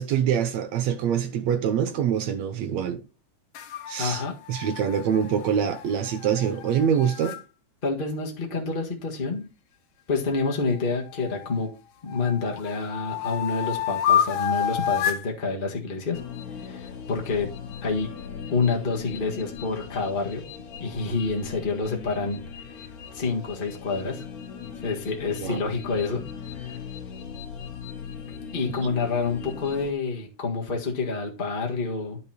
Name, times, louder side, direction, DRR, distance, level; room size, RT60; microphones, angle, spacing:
voice 1, 0.0-3.0 3.9-4.2 4.5-7.4 25.4-25.6, right 8 dB, 70° right, 2.0 m, -25 dB
sound 1, 3.5-7.4 10.3-11.6 12.1-15.3, left 9 dB, 70° left, 1.3 m, -29 dB
voice 2, 4.0-4.3 7.8-9.5 10.1-11.7 12.0-16.2 16.5-17.5 17.8-18.1 18.5-20.4 20.8-24.2 24.8-26.8 28.5-32.2, left 4 dB, 25° left, 1.3 m, -28 dB
sound 2, 16.1-29.9, left 7 dB, 85° left, 2.5 m, -39 dB
11.0 x 5.5 x 4.3 m
omnidirectional pair, 3.4 m